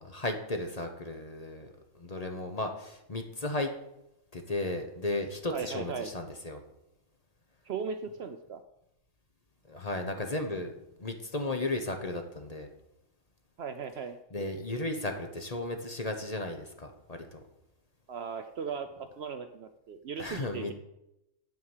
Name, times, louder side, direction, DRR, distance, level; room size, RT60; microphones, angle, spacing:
voice 1, 0.0-1.7 1.9-3.7 4.3-6.6 9.7-10.7 11.0-12.7 14.3-17.4 20.2-20.7, left 2 dB, 30° left, 5 dB, 1.0 m, -35 dB
voice 2, 5.5-6.1 7.7-8.6 13.6-14.2 18.1-18.9 19.2-20.7, right 6 dB, 60° right, 8 dB, 0.7 m, -37 dB
9.4 x 4.7 x 7.2 m, 0.86 s
omnidirectional pair, 1.4 m